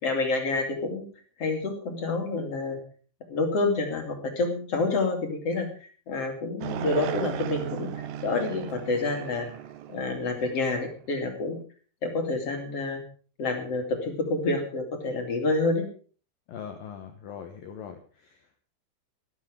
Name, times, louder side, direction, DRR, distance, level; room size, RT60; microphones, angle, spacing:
voice 1, 0.0-1.1 1.4-2.8 3.3-5.7 6.1-7.9 8.2-9.5 9.9-11.6 12.0-13.0 13.4-15.9, left 3 dB, 40° left, 5 dB, 2.7 m, -28 dB
sound 1, 6.6-11.0, right 9 dB, 80° right, 3.8 m, -36 dB
voice 2, 16.5-18.6, left 7 dB, 75° left, 6 dB, 2.1 m, -41 dB
14.0 x 13.5 x 5.1 m, 0.40 s
omnidirectional pair, 5.8 m